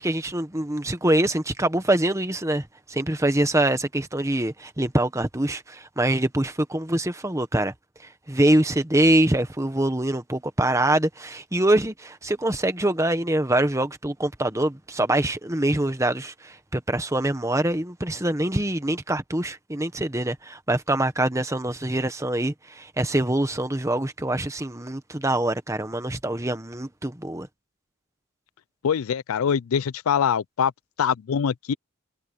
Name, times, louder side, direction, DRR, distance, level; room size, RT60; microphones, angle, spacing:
voice 1, 0.0-7.7 8.3-27.5, right 1 dB, 15° right, 1.3 m, -24 dB
voice 2, 28.8-30.7 31.0-31.7, left 7 dB, 80° left, 0.4 m, -23 dB
head